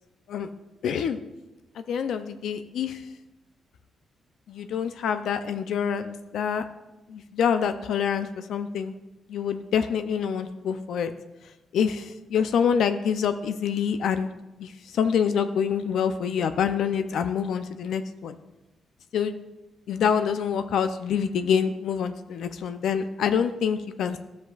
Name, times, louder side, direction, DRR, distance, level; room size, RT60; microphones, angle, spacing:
voice 1, 0.8-1.2 1.8-3.0 4.5-6.6 7.1-9.0 9.3-11.1 11.7-14.3 14.6-18.4 19.1-19.3 19.9-24.2, left 7 dB, 75° left, 10 dB, 0.4 m, -26 dB
12.5 x 7.2 x 2.3 m, 1.0 s
cardioid pair, 110°, 0 cm